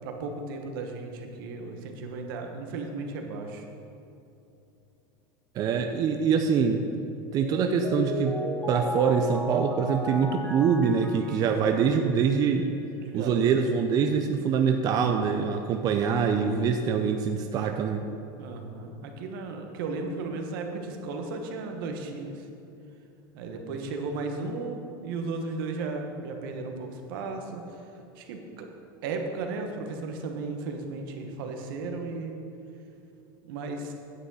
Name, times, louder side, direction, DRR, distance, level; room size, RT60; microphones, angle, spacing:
voice 1, 0.0-3.6 5.7-5.9 13.0-13.5 18.4-22.3 23.3-27.6 28.2-28.7 29.0-32.3 33.4-33.9, right 3 dB, 75° right, 4 dB, 1.3 m, -35 dB
voice 2, 5.5-6.8 7.3-8.4 8.7-12.7 13.1-18.0, right 6 dB, 35° right, 5 dB, 0.5 m, -24 dB
Mallet percussion, 7.4-12.3, left 1 dB, 5° left, 0.9 m, -34 dB
9.8 x 6.3 x 5.6 m, 2.8 s
supercardioid pair, 145°, 12 cm